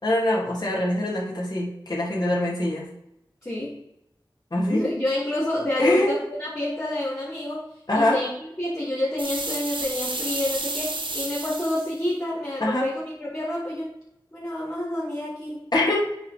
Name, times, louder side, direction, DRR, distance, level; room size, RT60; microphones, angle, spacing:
voice 1, 0.0-2.9 4.5-4.8 5.8-6.1 7.9-8.2 12.6-12.9 15.7-15.9, left 1 dB, 55° left, -5 dB, 2.9 m, -23 dB
voice 2, 3.4-3.8 4.7-7.6 7.9-8.3 8.6-13.9 14.3-15.6, left 1 dB, 30° left, -10 dB, 3.1 m, -28 dB
sound 1, 9.2-11.9, right 2 dB, 80° right, 1.2 m, -31 dB
8.9 x 4.0 x 5.1 m, 0.81 s
wide cardioid pair, 60°, 8 cm